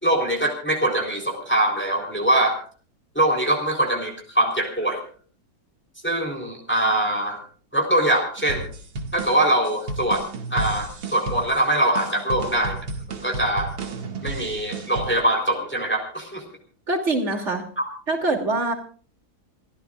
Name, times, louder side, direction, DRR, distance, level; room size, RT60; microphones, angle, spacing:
voice 1, 0.0-2.6 3.2-5.0 6.0-7.4 7.7-8.7 9.1-10.2 10.5-12.8 13.1-13.8 14.2-16.4 17.8-17.9, right 1 dB, 5° left, 1 dB, 3.7 m, -23 dB
sound 1, 8.4-15.2, right 3 dB, 80° right, 2.8 m, -33 dB
voice 2, 16.9-17.6 18.1-18.7, right 2 dB, 35° right, 4 dB, 3.3 m, -23 dB
28.0 x 15.5 x 2.5 m, 0.42 s
omnidirectional pair, 2.1 m